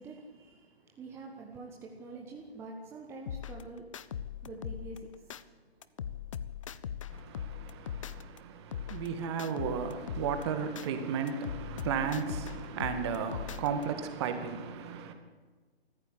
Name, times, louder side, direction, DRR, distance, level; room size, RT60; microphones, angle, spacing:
voice 1, 0.0-6.2 6.7-6.9, right 3 dB, 10° right, 1.4 m, -47 dB
sound 1, 3.3-5.4 5.8-8.4 8.7-10.9 11.3-13.8, left 9 dB, 30° left, 0.8 m, -40 dB
voice 2, 7.1-15.1, right 6 dB, 25° right, 2.1 m, -34 dB
26.5 x 14.5 x 8.4 m
figure-of-eight pair, 140°, 31 cm